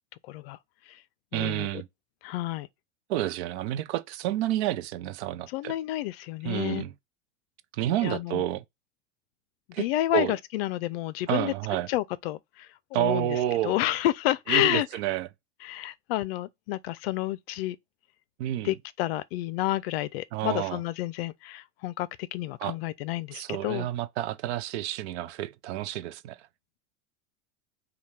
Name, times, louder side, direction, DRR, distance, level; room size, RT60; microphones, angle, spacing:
voice 1, 0.3-0.6 0.9-1.0 1.3-1.7 2.2-2.7 5.5-6.8 8.0-8.4 9.8-11.5 11.9-13.3 13.6-14.9 15.6-17.8 18.6-23.9, left 15 dB, 55° left, 0.5 m, -30 dB
voice 2, 1.3-1.9 3.1-5.7 6.4-6.9 7.7-8.6 9.7-9.9 10.1-10.3 11.3-11.9 12.9-13.8 14.5-15.3 18.4-18.7 20.3-20.8 22.6-22.8 23.3-26.5, right 13 dB, 65° right, 0.6 m, -29 dB
5.4 x 2.3 x 3.3 m
supercardioid pair, 140°, 36 cm